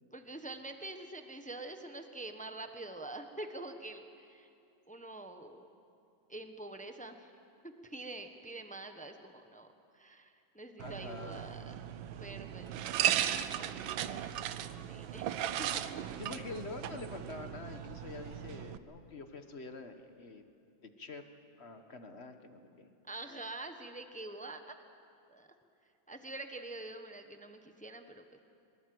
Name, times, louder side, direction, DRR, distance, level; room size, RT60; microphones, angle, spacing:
voice 1, 0.1-4.5 4.9-5.7 6.3-7.3 7.6-9.7 9.9-11.7 12.2-15.3 15.6-15.8 23.1-24.7 25.3-25.5 26.1-28.4, right 2 dB, 5° left, 6 dB, 0.7 m, -46 dB
voice 2, 10.8-11.5 16.2-20.4 20.8-21.2 21.6-22.9, left 3 dB, 40° left, 7 dB, 1.3 m, -46 dB
sound 1, 10.8-18.8, right 10 dB, 90° right, 1.5 m, -37 dB
23.5 x 22.0 x 7.8 m, 2.7 s
omnidirectional pair, 2.1 m